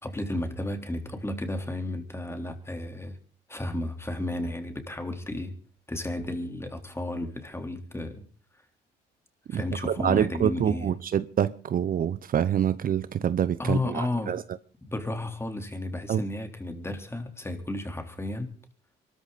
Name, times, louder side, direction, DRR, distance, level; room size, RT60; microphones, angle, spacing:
voice 1, 0.0-3.2 3.5-5.6 5.9-8.3 9.5-10.9 13.6-14.4 14.8-18.5, left 1 dB, 15° left, 3.9 m, -33 dB
voice 2, 9.5-14.4 16.1-16.2, right 9 dB, 50° right, 0.8 m, -26 dB
24.0 x 13.5 x 4.2 m
supercardioid pair, 70°, 19 cm